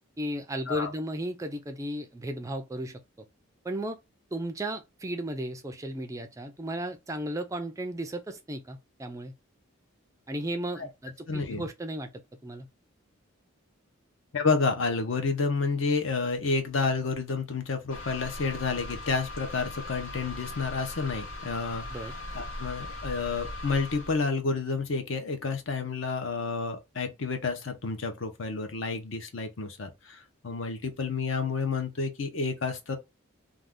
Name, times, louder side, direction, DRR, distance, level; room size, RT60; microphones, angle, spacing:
voice 1, 0.2-3.0 3.6-4.0 4.3-9.3 10.3-12.1 12.4-12.7 21.9-22.1, right 1 dB, 15° right, 0.3 m, -35 dB
voice 2, 11.3-11.7 14.3-21.9 22.3-33.0, left 4 dB, 60° left, 0.7 m, -30 dB
sound 1, 17.9-24.2, left 2 dB, 85° left, 1.0 m, -39 dB
2.5 x 2.4 x 3.4 m
head